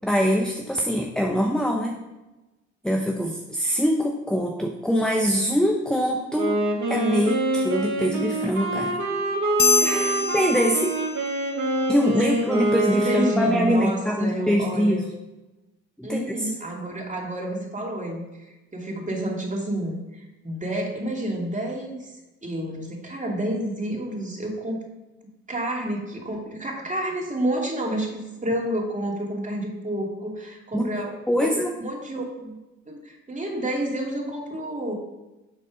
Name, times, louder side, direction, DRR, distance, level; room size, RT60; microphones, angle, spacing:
voice 1, 0.0-2.0 2.8-6.6 6.9-9.0 10.3-10.9 11.9-15.1 16.0-16.2 30.7-30.9 31.3-31.7, equal, ahead, 1 dB, 1.0 m, -23 dB
Wind instrument woodwind instrument, 6.3-14.0, right 2 dB, 60° right, 2.4 m, -25 dB
sound 1, 9.6-11.5, left 4 dB, 30° left, 0.7 m, -25 dB
voice 2, 9.8-10.2 12.2-12.3 12.9-15.1 16.0-22.1 22.4-24.9 25.5-31.5 31.8-32.6 32.9-34.9, right 1 dB, 20° right, 0 dB, 2.7 m, -29 dB
10.5 x 4.1 x 5.1 m, 1.0 s
hypercardioid pair, 55°, 34 cm